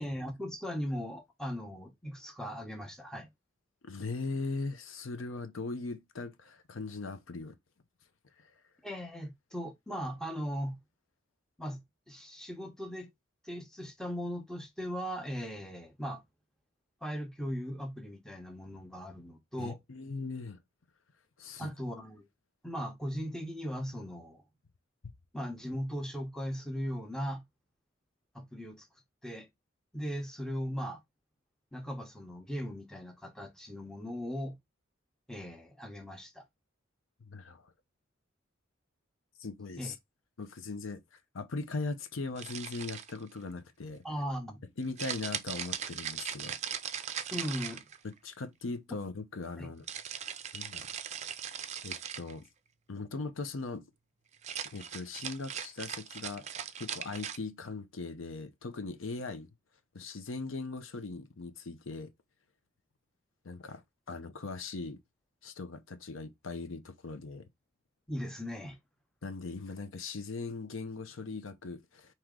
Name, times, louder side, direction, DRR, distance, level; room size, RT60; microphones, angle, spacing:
voice 1, 0.0-3.3 8.8-10.8 11.6-13.1 13.4-16.2 17.0-19.8 21.6-22.2 22.6-24.4 25.3-27.4 28.3-28.9 29.2-29.5 29.9-31.0 31.7-34.6 35.3-36.4 39.8-39.9 44.0-44.6 47.3-47.8 49.6-49.7 68.1-68.8, equal, 5° left, 0.8 m, -38 dB
voice 2, 3.8-7.6 8.4-8.5 19.6-20.6 21.4-21.7 25.0-25.1 37.3-37.7 39.4-39.9 40.4-44.0 44.8-46.6 48.0-49.8 50.5-50.9 51.8-52.5 52.9-53.8 54.7-59.5 59.9-62.1 63.4-63.8 64.1-65.0 65.4-67.5 69.2-72.1, left 3 dB, 80° left, 0.7 m, -39 dB
sound 1, 42.4-43.3 45.0-48.2 49.9-52.3 54.3-57.4, right 8 dB, 35° right, 0.4 m, -39 dB
4.6 x 3.0 x 3.7 m
head